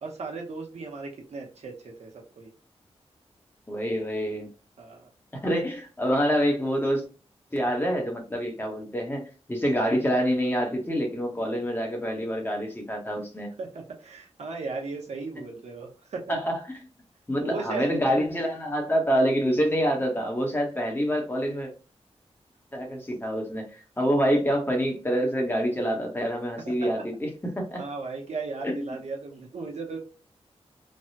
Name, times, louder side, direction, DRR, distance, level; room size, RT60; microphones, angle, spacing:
voice 1, 0.0-2.5 4.8-5.1 13.6-16.3 17.4-18.0 27.8-30.0, right 4 dB, 85° right, 0 dB, 0.9 m, -36 dB
voice 2, 3.7-4.5 5.4-7.0 7.5-13.5 16.3-16.9 17.3-21.7 22.7-27.3 27.6-27.8 28.6-29.0, equal, 20° left, 1 dB, 1.0 m, -26 dB
3.4 x 2.2 x 2.7 m, 0.34 s
wide cardioid pair, 105°, 11 cm